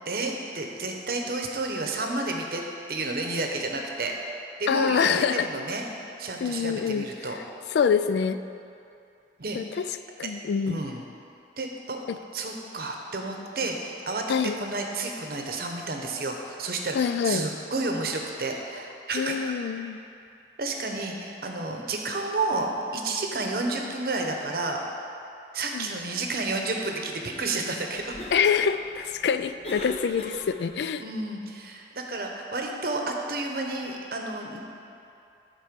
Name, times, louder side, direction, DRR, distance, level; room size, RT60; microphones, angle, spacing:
voice 1, 0.1-2.6 2.9-4.1 4.6-5.8 6.2-7.4 9.4-9.8 10.2-10.3 10.7-11.0 11.6-12.0 12.3-14.2 14.6-19.6 20.6-24.8 25.5-28.2 31.0-34.6, right 2 dB, 55° right, 2 dB, 0.8 m, -31 dB
voice 2, 4.7-5.5 6.4-7.1 7.7-8.4 9.5-9.9 10.2-10.8 12.1-12.2 14.3-14.6 16.9-17.5 19.1-20.0 25.7-25.9 28.3-31.0, left 6 dB, 75° left, 11 dB, 0.3 m, -25 dB
Cough, 27.9-30.8, left 2 dB, 35° left, 0.6 m, -40 dB
10.5 x 4.3 x 5.2 m, 2.6 s
head